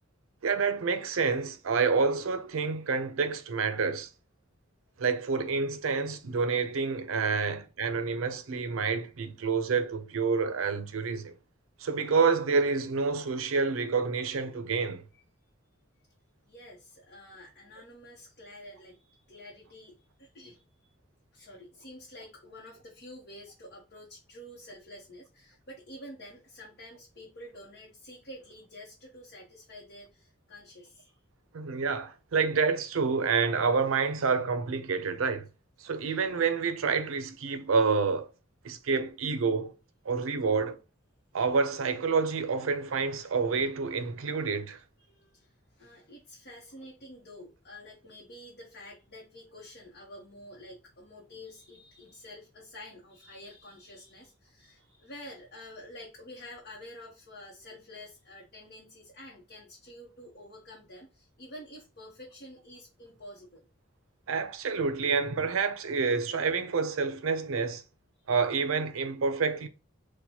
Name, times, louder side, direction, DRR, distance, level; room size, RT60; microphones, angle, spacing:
voice 1, 0.4-4.1 5.0-11.3 11.8-15.0 31.5-35.5 35.8-38.3 38.6-39.7 40.1-40.8 41.3-44.8 64.3-67.8 68.3-69.7, right 5 dB, 85° right, 0.5 m, -28 dB
voice 2, 16.5-20.9 21.3-31.2 45.0-63.7, left 1 dB, 50° left, 0.8 m, -49 dB
4.4 x 2.2 x 2.8 m
head